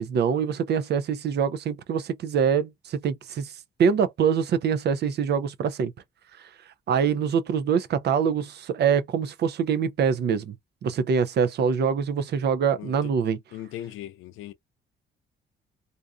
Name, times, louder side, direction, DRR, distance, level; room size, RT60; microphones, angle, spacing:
voice 1, 0.0-3.5 3.8-5.9 6.9-10.5 10.8-13.4, right 7 dB, 55° right, 0.5 m, -24 dB
voice 2, 12.8-13.1 13.5-14.5, left 12 dB, 85° left, 0.5 m, -38 dB
2.5 x 2.4 x 2.3 m
cardioid pair, 90°, 20 cm